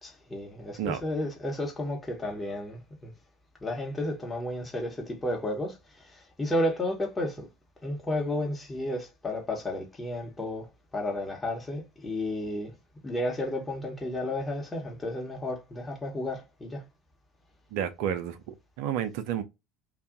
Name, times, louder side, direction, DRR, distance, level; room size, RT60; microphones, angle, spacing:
voice 1, 0.0-3.1 3.6-7.5 7.8-10.7 10.9-12.7 13.0-16.8, left 1 dB, 15° left, 1.0 m, -32 dB
voice 2, 17.7-19.4, right 9 dB, 55° right, 0.4 m, -31 dB
2.5 x 2.3 x 2.5 m
figure-of-eight pair, 70°, 0 cm